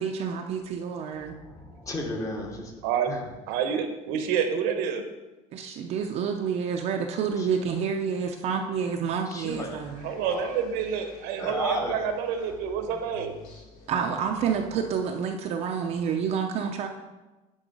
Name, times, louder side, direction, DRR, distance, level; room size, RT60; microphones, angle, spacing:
voice 1, 0.0-1.3 5.5-10.1 13.9-16.9, right 6 dB, 45° right, 3 dB, 0.6 m, -29 dB
voice 2, 1.2-2.7 3.1-3.2 7.4-7.5 9.3-9.8 10.1-10.5 11.4-12.0, left 2 dB, 20° left, 2 dB, 1.1 m, -34 dB
voice 3, 2.8-3.2 3.5-5.0 10.0-13.4, right 7 dB, 80° right, 7 dB, 1.0 m, -28 dB
sound 1, 9.3-14.9, left 2 dB, 60° left, 2.4 m, -50 dB
10.0 x 3.9 x 5.3 m, 1.1 s
cardioid pair, 170°, 15 cm